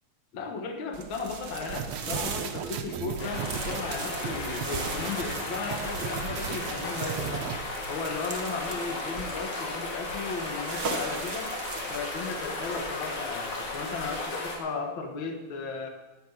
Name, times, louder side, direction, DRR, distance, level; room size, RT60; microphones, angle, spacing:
voice 1, 0.3-7.2 7.9-11.5 11.9-15.9, left 4 dB, 50° left, 4 dB, 1.8 m, -35 dB
sound 1, 0.9-13.2, right 5 dB, 55° right, 1.1 m, -40 dB
sound 2, 1.7-7.6, right 8 dB, 75° right, 2.1 m, -36 dB
sound 3, 3.2-14.6, left 2 dB, 90° left, 3.8 m, -35 dB
10.5 x 9.4 x 9.8 m, 1.1 s
omnidirectional pair, 3.3 m